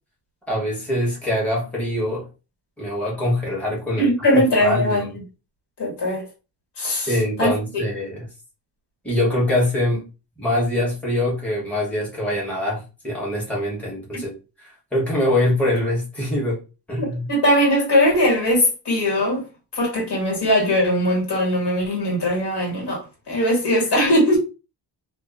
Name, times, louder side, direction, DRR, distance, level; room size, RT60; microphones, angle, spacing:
voice 1, 0.5-2.3 2.8-5.1 7.1-8.2 9.0-10.0 10.4-16.6 16.9-17.3, left 1 dB, 5° left, 1.1 m, -24 dB
voice 2, 4.0-5.0 5.8-6.3 6.8-7.8 14.1-14.2 17.3-19.4 19.7-24.4, equal, 70° left, 1.7 m, -20 dB
2.8 x 2.4 x 2.4 m
wide cardioid pair, 125°, 42 cm